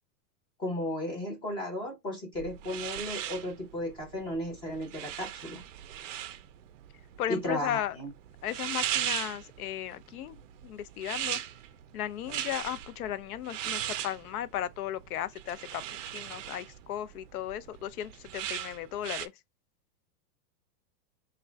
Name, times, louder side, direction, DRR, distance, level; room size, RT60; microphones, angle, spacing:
voice 1, 0.6-5.6 7.3-8.1, left 1 dB, 10° left, 0.6 m, -34 dB
sound 1, 2.3-19.3, right 11 dB, 50° right, 0.5 m, -38 dB
voice 2, 7.2-8.0 8.4-11.4 11.9-15.8 16.1-19.3, left 11 dB, 65° left, 0.5 m, -36 dB
3.5 x 2.2 x 3.3 m
supercardioid pair, 160°, 49 cm